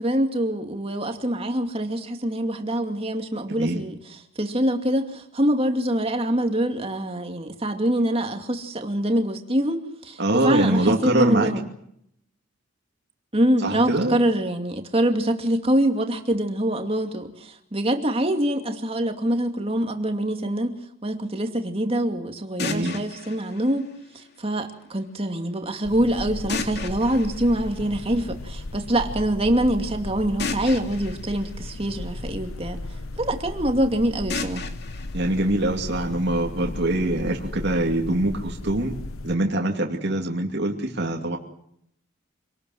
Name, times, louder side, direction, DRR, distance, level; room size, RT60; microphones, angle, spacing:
voice 1, 0.0-4.0 4.4-11.6 13.3-20.7 21.0-23.9 24.4-32.8 33.2-34.7, right 1 dB, 30° right, 2.5 m, -24 dB
voice 2, 10.2-11.5 13.6-14.2 22.6-23.0 35.1-39.0 39.2-41.4, right 1 dB, 55° right, 2.6 m, -23 dB
sound 1, 22.6-24.6 26.5-28.5 30.4-32.6 34.3-36.3, left 4 dB, 50° left, 2.6 m, -36 dB
sound 2, 25.8-39.4, left 2 dB, 85° left, 1.0 m, -35 dB
26.5 x 19.5 x 7.9 m
head